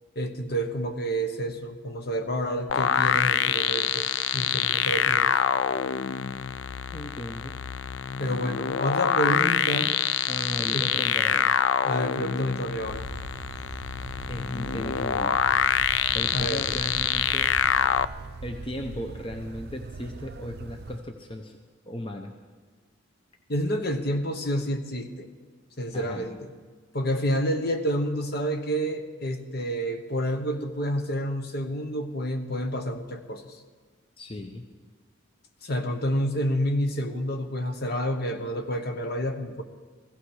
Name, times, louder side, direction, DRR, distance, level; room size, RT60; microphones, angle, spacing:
voice 1, 0.1-4.1 4.3-5.4 8.2-9.9 10.7-10.9 11.8-13.0 16.3-16.7 23.5-25.3 25.8-26.5 26.9-33.5 35.6-39.6, equal, 50° left, 6 dB, 1.1 m, -29 dB
sound 1, 2.7-18.1, left 9 dB, 65° left, 0.4 m, -25 dB
voice 2, 6.9-7.6 10.3-11.6 14.3-15.6 16.1-17.5 18.4-21.6 21.9-22.3 25.9-26.3 34.2-34.7, left 1 dB, 25° left, 4 dB, 0.7 m, -36 dB
sound 2, 12.8-21.0, right 3 dB, 50° right, 0.5 m, -40 dB
16.0 x 14.5 x 4.8 m, 1.4 s
head